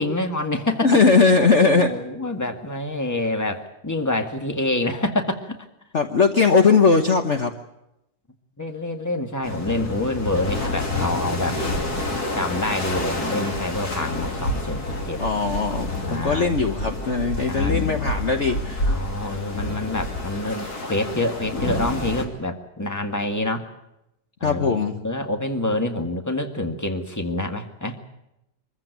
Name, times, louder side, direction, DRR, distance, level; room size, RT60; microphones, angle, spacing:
voice 1, 0.0-1.0 1.6-5.6 8.6-11.6 12.3-15.2 16.1-16.8 17.5-17.8 18.9-23.7 24.4-28.0, left 2 dB, 10° left, 5 dB, 1.8 m, -27 dB
voice 2, 0.8-1.9 5.9-7.5 15.2-18.9 24.4-25.0, left 4 dB, 45° left, 6 dB, 1.4 m, -19 dB
sound 1, 9.4-22.3, left 2 dB, 65° left, 3.6 m, -28 dB
24.5 x 15.0 x 9.3 m, 0.87 s
omnidirectional pair, 1.8 m